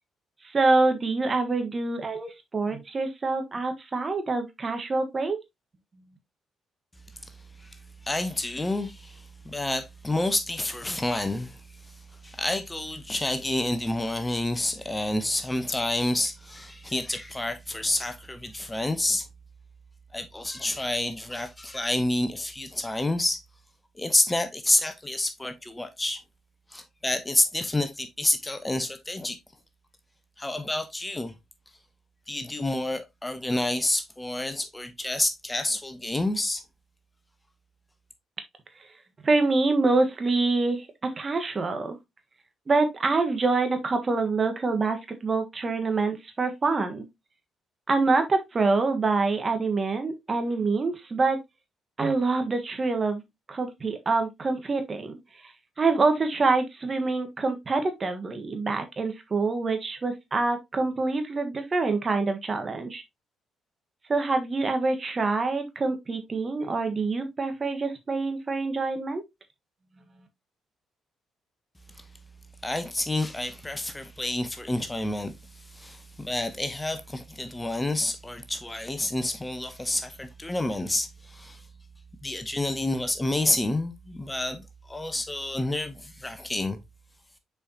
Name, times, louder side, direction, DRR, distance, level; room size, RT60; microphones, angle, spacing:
voice 1, 0.4-5.4 39.2-42.0 42.7-47.0 47.9-51.4 52.0-53.2 53.5-55.2 55.4-55.5 55.8-63.0 64.1-69.2, right 3 dB, 35° right, 1.5 m, -26 dB
voice 2, 8.0-11.6 12.2-19.2 20.1-23.4 24.0-26.2 26.7-29.4 30.4-31.3 32.3-36.6 72.6-75.3 75.7-81.6 82.2-86.8, left 1 dB, 15° left, 1.0 m, -29 dB
6.7 x 4.9 x 2.9 m
figure-of-eight pair, 45°, 0 cm